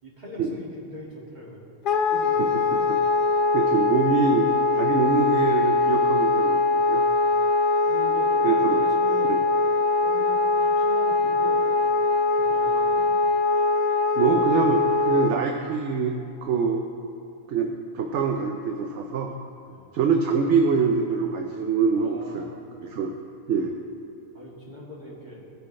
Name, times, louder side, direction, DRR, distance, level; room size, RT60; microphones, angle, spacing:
voice 1, 0.0-1.6 2.0-2.4 2.8-2.9 7.2-7.3 7.9-9.4 10.0-12.1 12.4-13.3 19.6-19.9 21.9-23.0 24.3-25.5, left 1 dB, 30° right, -6 dB, 2.2 m, -41 dB
Wind instrument woodwind instrument, 1.8-15.3, left 3 dB, 70° left, 0.4 m, -22 dB
voice 2, 3.5-7.0 8.4-8.8 9.3-9.4 14.2-16.9 17.5-19.3 19.9-22.5 22.8-23.1 23.5-23.7, right 5 dB, 60° right, 3 dB, 0.8 m, -24 dB
17.5 x 6.0 x 3.2 m, 2.4 s
omnidirectional pair, 1.5 m